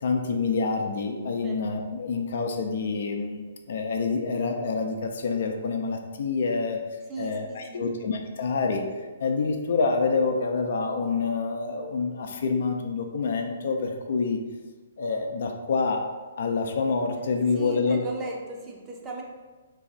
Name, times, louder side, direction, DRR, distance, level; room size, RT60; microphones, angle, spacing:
voice 1, 0.0-6.8 7.2-8.8 9.2-14.4 15.0-16.1 16.4-18.0, left 4 dB, 60° left, 3 dB, 0.4 m, -27 dB
voice 2, 7.1-7.8 17.5-19.2, right 3 dB, 20° right, -1 dB, 0.6 m, -36 dB
3.1 x 2.7 x 3.8 m, 1.3 s
figure-of-eight pair, 125°, 0 cm